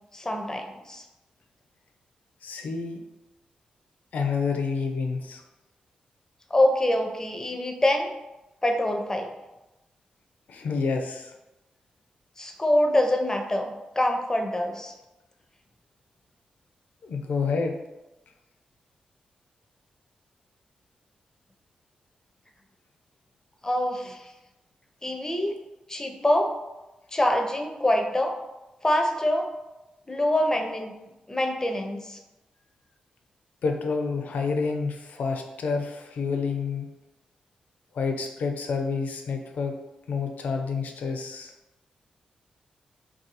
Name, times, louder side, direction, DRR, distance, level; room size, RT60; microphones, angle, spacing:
voice 1, 0.1-1.0 6.5-8.1 8.6-9.3 12.4-14.9 23.6-24.2 25.0-25.6 25.9-26.5 27.1-28.4 28.8-29.5 30.1-30.9 31.3-32.2, left 1 dB, 20° left, 4 dB, 0.6 m, -25 dB
voice 2, 2.4-3.0 4.1-5.4 10.5-11.3 17.0-17.7 33.6-36.9 37.9-39.8 40.1-41.5, left 4 dB, 75° left, 4 dB, 0.5 m, -28 dB
2.6 x 2.3 x 4.0 m, 1.0 s
supercardioid pair, 45°, 3 cm